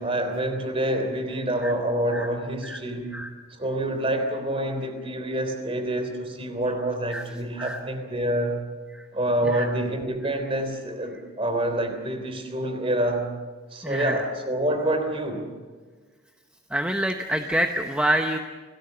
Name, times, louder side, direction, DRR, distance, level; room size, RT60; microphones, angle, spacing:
voice 1, 0.0-3.2 3.6-8.6 9.1-13.3 13.7-15.5, right 1 dB, 25° right, 7 dB, 3.4 m, -27 dB
voice 2, 13.8-14.2 16.7-18.4, right 1 dB, 5° right, 4 dB, 0.9 m, -26 dB
29.0 x 18.5 x 6.9 m, 1.5 s
head